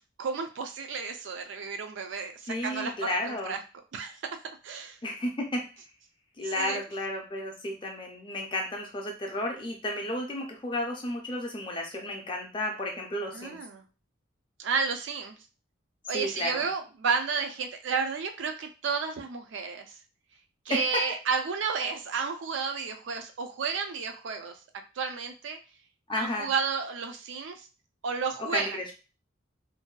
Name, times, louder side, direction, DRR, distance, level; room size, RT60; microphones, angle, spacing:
voice 1, 0.2-3.6 3.9-5.0 6.4-6.8 13.3-13.8 14.6-15.3 16.1-19.9 20.7-24.6 25.0-25.6 26.2-27.7 28.0-28.8, right 5 dB, 70° right, 5 dB, 0.4 m, -32 dB
voice 2, 2.5-3.6 5.0-5.6 6.4-13.6 16.1-16.7 20.7-21.0 26.1-26.5 28.5-28.8, left 1 dB, 25° left, 1 dB, 0.5 m, -32 dB
2.6 x 2.2 x 2.3 m, 0.33 s
head